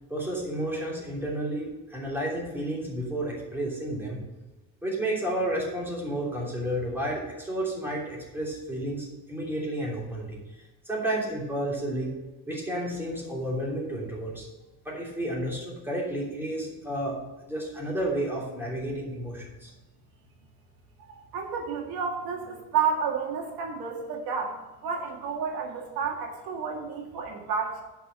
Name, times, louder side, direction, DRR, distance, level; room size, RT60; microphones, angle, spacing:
voice 1, 0.1-4.2 4.8-10.4 10.8-12.1 12.5-14.5 14.8-17.2 17.5-19.7, right 1 dB, 5° right, -4 dB, 3.0 m, -31 dB
voice 2, 21.1-24.6 24.8-27.8, right 6 dB, 80° right, 1 dB, 1.9 m, -31 dB
8.2 x 5.8 x 7.4 m, 1.1 s
cardioid pair, 140°, 36 cm